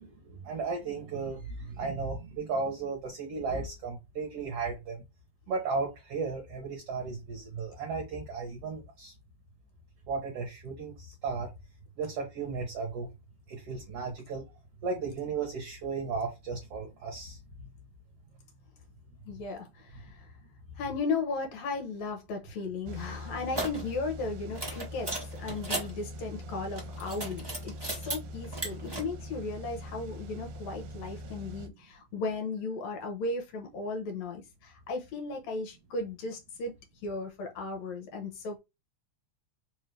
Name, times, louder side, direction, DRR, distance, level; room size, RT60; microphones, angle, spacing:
voice 1, 0.0-5.0 5.5-9.1 10.1-11.5 12.0-13.1 13.5-14.4 14.8-17.7, right 4 dB, 60° right, 1.9 m, -35 dB
voice 2, 19.3-20.3 20.8-36.7 37.0-38.6, left 3 dB, 70° left, 2.1 m, -36 dB
sound 1, 22.9-31.7, equal, 85° right, 2.0 m, -42 dB
sound 2, 23.5-23.8 24.5-25.9 26.6-28.2 28.4-29.0, right 2 dB, 20° right, 0.6 m, -35 dB
4.7 x 2.7 x 3.2 m
omnidirectional pair, 3.5 m